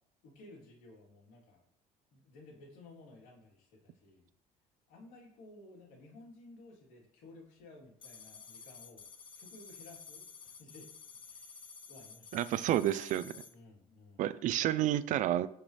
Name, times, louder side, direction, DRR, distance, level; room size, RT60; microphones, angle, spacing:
voice 1, 0.2-1.6 2.1-4.3 4.9-9.0 9.4-10.9 11.2-12.5 13.5-14.3, left 2 dB, 80° left, -1 dB, 3.5 m, -56 dB
sound 1, 8.0-13.5, left 5 dB, 35° left, 1.2 m, -52 dB
voice 2, 12.3-13.3 14.2-15.5, right 12 dB, 60° right, 15 dB, 0.6 m, -30 dB
17.0 x 5.8 x 3.4 m, 0.70 s
cardioid pair, 120°, 15 cm